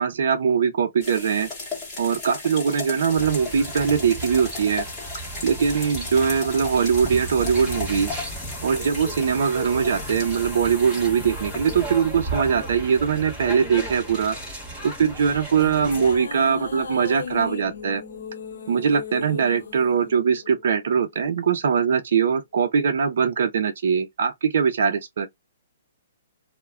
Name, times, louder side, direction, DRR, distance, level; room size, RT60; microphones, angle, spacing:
voice 1, 0.0-1.5 2.0-4.8 5.4-8.2 8.6-14.4 14.8-18.0 18.7-25.3, right 6 dB, 55° right, 0.5 m, -22 dB
sound 1, 1.0-17.5, left 3 dB, 10° left, 1.0 m, -37 dB
sound 2, 3.1-16.2, right 1 dB, 10° right, 1.1 m, -35 dB
sound 3, 14.9-21.5, left 5 dB, 65° left, 0.9 m, -36 dB
2.2 x 2.1 x 3.4 m
hypercardioid pair, 175°, 0 cm